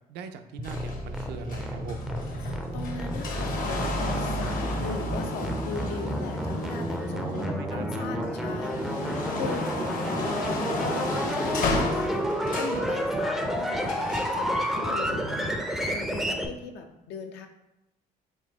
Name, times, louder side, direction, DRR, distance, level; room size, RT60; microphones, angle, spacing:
voice 1, 0.1-2.1 7.0-8.3 14.9-15.6, right 6 dB, 80° right, 8 dB, 0.4 m, -41 dB
sound 1, 0.6-7.8 8.3-12.9 13.9-14.4 15.3-15.4, left 3 dB, 55° left, 0.8 m, -34 dB
sound 2, 0.6-16.5, equal, ahead, 0.4 m, -30 dB
voice 2, 2.7-15.5 15.9-17.5, left 5 dB, 85° left, 5 dB, 0.6 m, -39 dB
4.3 x 2.7 x 3.4 m, 0.93 s
cardioid pair, 110°, 17 cm